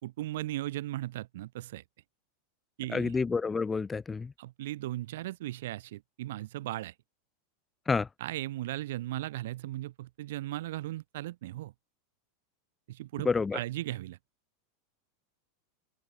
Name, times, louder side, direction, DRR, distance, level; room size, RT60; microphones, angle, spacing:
voice 1, 0.0-1.8 2.8-3.1 4.4-6.9 8.2-11.7 12.9-14.2, right 15 dB, 75° right, 3.3 m, -37 dB
voice 2, 2.9-4.3 7.9-8.1 13.2-13.6, left 4 dB, 15° left, 0.8 m, -29 dB
open air
supercardioid pair, 125°, 0 cm